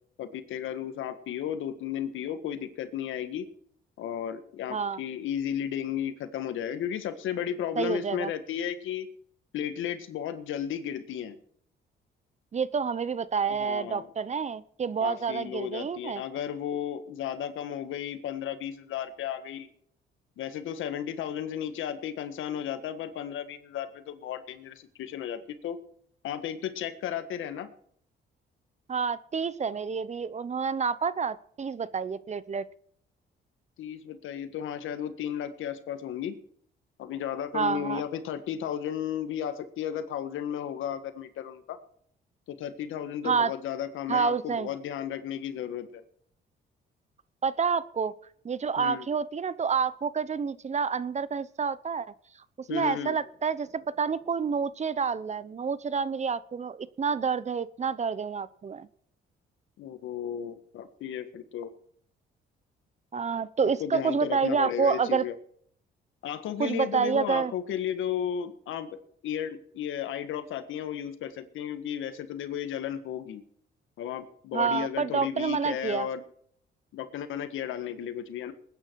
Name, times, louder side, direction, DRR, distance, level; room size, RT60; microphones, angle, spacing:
voice 1, 0.2-3.5 4.0-9.1 9.5-11.4 13.5-14.1 15.0-19.7 20.4-25.8 26.2-27.7 33.8-36.4 37.0-41.8 42.5-46.0 48.8-49.1 52.7-53.2 59.8-61.7 63.8-65.3 66.2-73.4 74.0-76.2 76.9-78.5, left 9 dB, 80° left, 11 dB, 1.6 m, -34 dB
voice 2, 7.8-8.3 12.5-16.2 28.9-32.7 37.5-38.0 43.2-43.5 44.1-44.7 47.4-48.2 48.4-52.1 52.7-58.9 63.1-65.3 66.6-67.5 74.5-76.1, right 6 dB, 35° right, 17 dB, 0.8 m, -28 dB
20.0 x 9.6 x 4.7 m, 0.63 s
cardioid pair, 90°, 20 cm